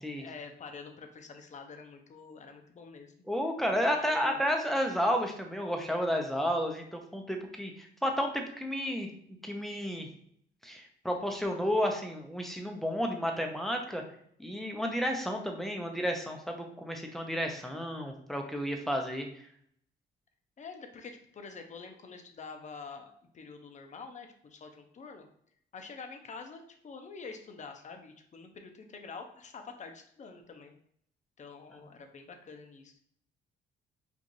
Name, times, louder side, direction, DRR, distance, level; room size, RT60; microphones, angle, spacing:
voice 1, 0.2-3.1 3.7-4.4 20.6-25.3 25.7-30.7 31.4-32.9, left 4 dB, 35° left, 4 dB, 0.7 m, -46 dB
voice 2, 3.3-9.1 9.4-10.1 10.6-14.0 14.4-19.3, equal, ahead, 2 dB, 0.7 m, -32 dB
4.6 x 2.5 x 2.6 m, 0.66 s
cardioid pair, 90°, 20 cm